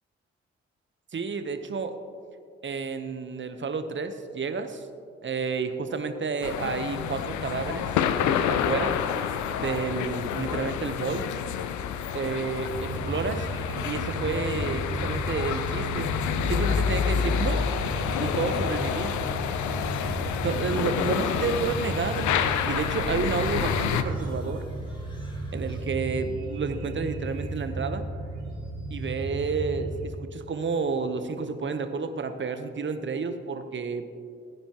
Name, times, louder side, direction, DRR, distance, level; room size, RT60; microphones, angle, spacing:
voice 1, 1.1-1.9 2.6-4.9 5.2-7.9 8.5-9.0 9.6-11.2 12.1-13.5 13.8-16.1 16.5-17.6 18.2-19.3 20.4-22.3 22.6-24.6 25.5-28.1 28.9-34.1, right 5 dB, 40° right, 9 dB, 1.0 m, -30 dB
sound 1, 6.4-24.0, left 8 dB, 75° left, 0.6 m, -28 dB
sound 2, 12.7-30.1, right 2 dB, 60° right, 2.8 m, -35 dB
sound 3, 17.3-25.9, equal, 15° left, 3.2 m, -47 dB
15.5 x 10.0 x 3.0 m, 2.3 s
hypercardioid pair, 40°, 30 cm